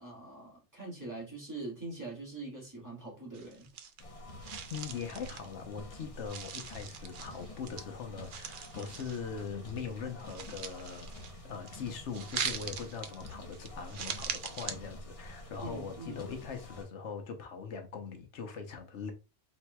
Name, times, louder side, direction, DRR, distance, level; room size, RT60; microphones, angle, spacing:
voice 1, 0.0-3.7 15.6-16.2, right 2 dB, 15° right, 2.0 m, -43 dB
sound 1, 3.3-4.2 4.4-6.0 6.3-7.8 8.2-9.5 9.8-11.8 12.1-14.7, right 7 dB, 55° right, 0.6 m, -41 dB
sound 2, 4.0-16.9, left 1 dB, 35° left, 0.9 m, -48 dB
voice 2, 4.7-19.1, left 6 dB, 85° left, 1.2 m, -41 dB
4.6 x 3.9 x 2.3 m
omnidirectional pair, 1.2 m